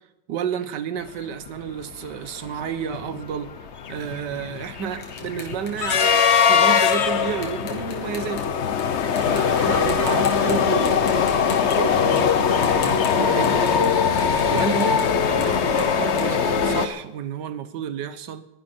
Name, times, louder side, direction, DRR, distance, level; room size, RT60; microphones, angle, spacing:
voice 1, 0.3-3.5 3.9-8.6 9.3-14.0 14.4-18.5, right 8 dB, 60° right, 12 dB, 1.4 m, -31 dB
sound 1, 1.5-1.6 1.8-2.1 2.5-16.9, left 7 dB, 55° left, 0.7 m, -21 dB
sound 2, 4.0-8.8 9.2-9.6 9.9-10.6 10.9-13.9 14.2-17.2, left 4 dB, 80° left, 3.1 m, -41 dB
20.5 x 11.0 x 4.4 m, 0.92 s
omnidirectional pair, 2.3 m